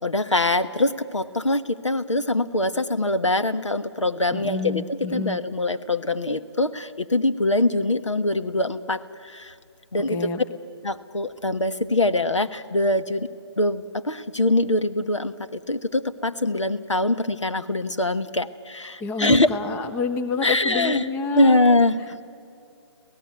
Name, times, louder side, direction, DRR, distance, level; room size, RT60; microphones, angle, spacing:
voice 1, 0.0-9.5 9.9-10.2 10.8-13.3 13.6-19.5 20.4-21.0 21.3-22.2, left 2 dB, 90° left, 9 dB, 1.3 m, -23 dB
voice 2, 4.3-5.4 10.1-10.4 19.0-21.6, left 4 dB, 10° left, 8 dB, 0.8 m, -28 dB
26.0 x 17.0 x 9.4 m, 2.5 s
figure-of-eight pair, 150°, 15 cm